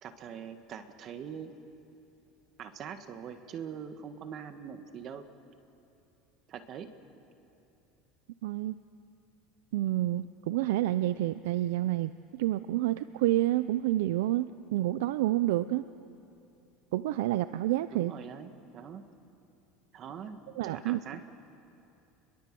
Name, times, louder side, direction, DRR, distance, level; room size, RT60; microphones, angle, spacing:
voice 1, 0.0-1.5 2.6-5.3 6.5-6.9 17.9-19.1 19.9-21.3, right 7 dB, 45° right, 8 dB, 1.8 m, -43 dB
voice 2, 8.4-8.7 9.7-15.8 16.9-18.1 20.6-21.0, right 15 dB, 85° right, 13 dB, 0.6 m, -29 dB
29.0 x 22.0 x 7.7 m, 2.8 s
supercardioid pair, 120°, 0 cm